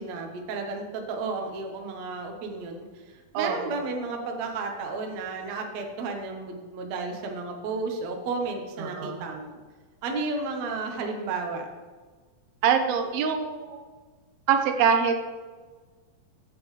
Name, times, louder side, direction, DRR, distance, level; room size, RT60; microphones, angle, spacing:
voice 1, 0.0-9.6 10.0-11.7, right 3 dB, 60° right, 2 dB, 2.0 m, -33 dB
voice 2, 3.3-3.7 8.8-9.2 12.6-13.8 14.5-15.2, right 6 dB, 85° right, 6 dB, 2.7 m, -24 dB
15.5 x 6.9 x 3.3 m, 1.4 s
omnidirectional pair, 4.2 m